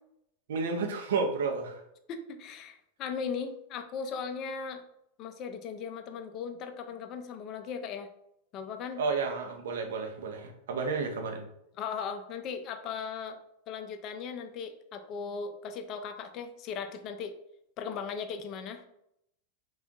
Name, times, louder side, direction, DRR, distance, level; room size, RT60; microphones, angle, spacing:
voice 1, 0.5-1.8 9.0-11.5, right 4 dB, 60° right, 3 dB, 0.5 m, -31 dB
voice 2, 2.1-4.8 5.2-8.1 8.5-9.0 11.8-13.4 13.7-17.3 17.8-18.9, left 6 dB, 35° left, 7 dB, 0.4 m, -38 dB
3.3 x 2.4 x 3.7 m, 0.78 s
figure-of-eight pair, 90°, 0 cm